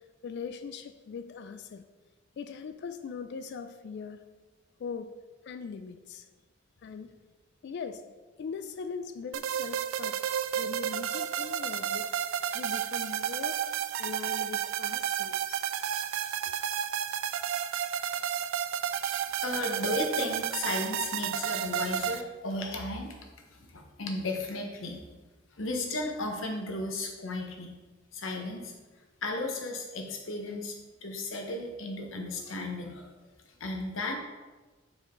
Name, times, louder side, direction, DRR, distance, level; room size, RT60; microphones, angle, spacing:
voice 1, 0.0-1.8 2.4-4.3 4.8-5.1 5.4-6.3 6.8-7.1 7.6-8.1 8.4-10.2 10.5-12.1 12.5-15.7, left 5 dB, 60° left, 10 dB, 0.3 m, -40 dB
sound 1, 9.3-22.2, right 9 dB, 85° right, 0.3 m, -32 dB
voice 2, 19.0-23.2 23.5-25.0 25.6-27.7 28.1-28.7 29.2-30.8 31.0-33.1 33.6-34.1, left 2 dB, 85° left, 2 dB, 1.0 m, -34 dB
5.5 x 4.9 x 3.7 m, 1.2 s
head